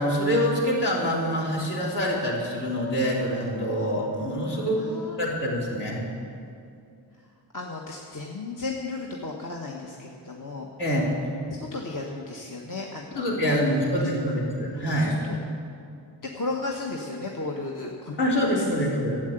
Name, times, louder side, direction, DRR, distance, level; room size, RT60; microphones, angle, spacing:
voice 1, 0.0-4.8 5.2-6.0 10.8-11.1 13.2-15.1 18.2-19.2, equal, 65° left, -4 dB, 3.6 m, -25 dB
voice 2, 4.6-5.3 7.5-10.7 11.5-13.8 14.0-14.1 15.0-15.4 16.2-18.2 18.6-18.7, left 3 dB, 45° left, -1 dB, 1.2 m, -34 dB
12.0 x 7.8 x 9.0 m, 2.4 s
wide cardioid pair, 80°, 45 cm